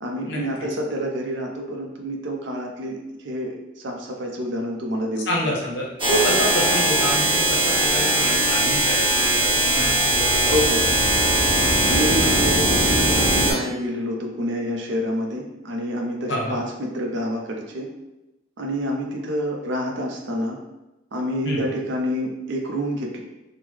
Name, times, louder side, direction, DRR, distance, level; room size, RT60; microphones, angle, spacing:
voice 1, 0.0-5.2 10.5-10.9 11.8-17.9 18.6-20.6 21.1-23.2, equal, 65° right, 1 dB, 0.5 m, -28 dB
voice 2, 5.3-10.6 16.3-16.6 21.4-21.7, equal, 65° left, -1 dB, 0.7 m, -27 dB
sound 1, 6.0-13.5, right 1 dB, 25° right, 0.8 m, -20 dB
3.6 x 2.0 x 3.1 m, 0.99 s
head